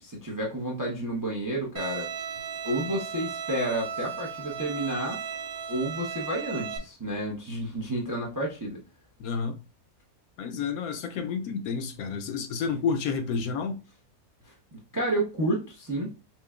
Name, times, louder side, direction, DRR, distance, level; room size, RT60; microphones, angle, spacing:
voice 1, 0.0-2.1 2.6-5.2 5.7-8.8 14.7-16.1, right 1 dB, 25° right, 0.4 m, -30 dB
Bowed string instrument, 1.8-6.8, right 7 dB, 65° right, 0.7 m, -36 dB
voice 2, 9.2-9.6 10.4-13.8, left 5 dB, 70° left, 1.0 m, -30 dB
5.7 x 2.2 x 2.4 m
omnidirectional pair, 1.6 m